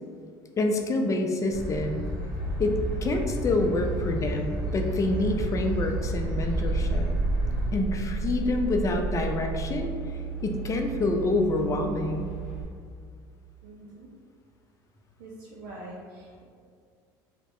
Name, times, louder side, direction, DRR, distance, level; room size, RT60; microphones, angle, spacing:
voice 1, 0.6-2.0 2.6-7.1 7.7-9.9 10.4-12.3, left 2 dB, 30° left, 3 dB, 0.4 m, -27 dB
sound 1, 1.5-7.7, equal, 10° left, 1.0 m, -32 dB
sound 2, 2.3-12.6, right 4 dB, 30° right, 1.2 m, -33 dB
voice 2, 13.6-14.1 15.2-16.4, right 1 dB, 85° right, -4 dB, 0.4 m, -44 dB
2.7 x 2.1 x 3.0 m, 2.1 s
supercardioid pair, 90°, 11 cm